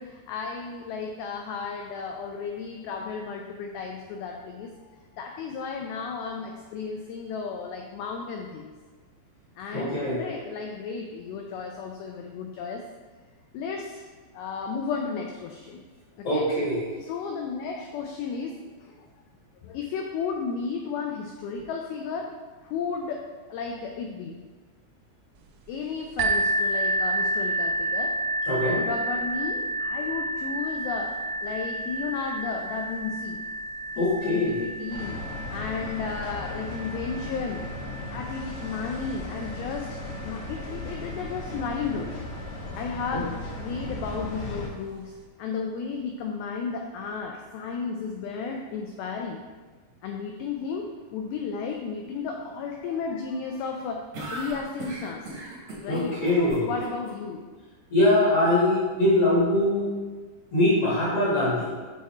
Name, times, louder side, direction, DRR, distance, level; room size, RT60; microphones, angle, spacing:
voice 1, 0.0-4.7 5.1-8.7 9.6-12.8 13.5-14.1 14.3-15.8 16.3-16.5 17.1-19.1 19.6-22.3 22.6-23.2 23.5-24.4 25.7-28.1 28.8-31.1 31.4-33.4 34.0-37.6 38.1-40.0 40.2-42.2 42.8-45.1 45.4-49.4 50.0-50.9 51.1-54.0 54.3-55.3 55.8-57.5, left 5 dB, 85° left, 2 dB, 2.1 m, -33 dB
voice 2, 9.7-10.2 16.2-16.8 28.5-28.8 34.0-34.6 43.1-43.2 55.8-56.7 57.9-59.9 60.5-61.7, left 1 dB, 55° left, -8 dB, 1.6 m, -22 dB
sound 1, 26.2-41.7 42.5-42.6 43.2-43.3, right 2 dB, 85° right, 2.4 m, -31 dB
sound 2, 34.9-44.7, left 2 dB, 70° left, 2.2 m, -37 dB
sound 3, 54.1-57.1, right 2 dB, 65° right, 1.6 m, -37 dB
7.4 x 3.6 x 4.2 m, 1.4 s
omnidirectional pair, 4.9 m